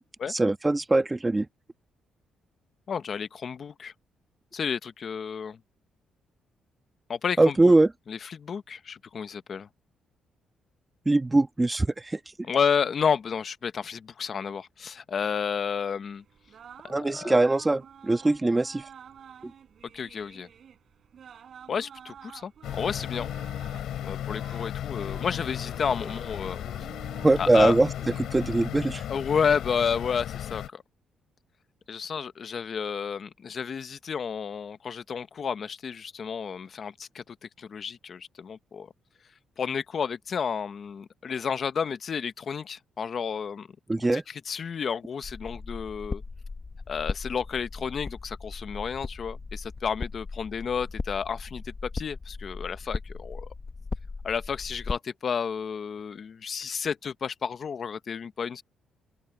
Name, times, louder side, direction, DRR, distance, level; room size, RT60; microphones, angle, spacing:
voice 1, 0.3-1.5 7.4-7.9 11.0-12.2 16.9-18.8 19.4-19.5 27.2-27.9 28.3-29.0 43.9-44.2, right 2 dB, 15° right, 1.2 m, -22 dB
voice 2, 2.9-3.9 4.5-5.6 7.1-7.6 8.1-9.7 12.5-16.2 16.8-17.3 19.9-20.5 21.7-23.3 24.0-26.6 27.4-27.8 29.1-30.8 31.9-38.9 39.6-43.7 44.0-46.2 46.9-53.5 54.2-58.6, left 6 dB, 45° left, 0.8 m, -31 dB
sound 1, 16.1-28.7, right 8 dB, 55° right, 5.8 m, -50 dB
sound 2, 22.6-30.7, left 11 dB, 75° left, 7.4 m, -35 dB
sound 3, 45.2-55.0, left 4 dB, 30° left, 1.2 m, -37 dB
open air
cardioid pair, 115°, 0 cm